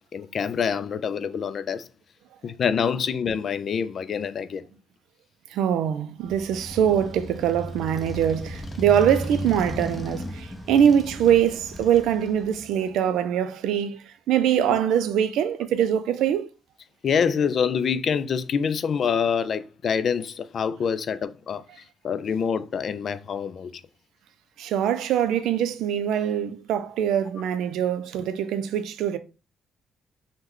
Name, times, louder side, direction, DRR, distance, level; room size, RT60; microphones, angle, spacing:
voice 1, 0.1-1.9 2.4-4.6 14.6-14.8 17.0-21.6 22.0-23.7, left 6 dB, 55° left, 0.3 m, -26 dB
voice 2, 5.5-16.5 24.6-29.2, right 9 dB, 85° right, 0.3 m, -23 dB
Motorcycle, 6.2-12.9, left 1 dB, 20° left, 0.6 m, -35 dB
3.0 x 2.1 x 3.6 m
cardioid pair, 90°, 0 cm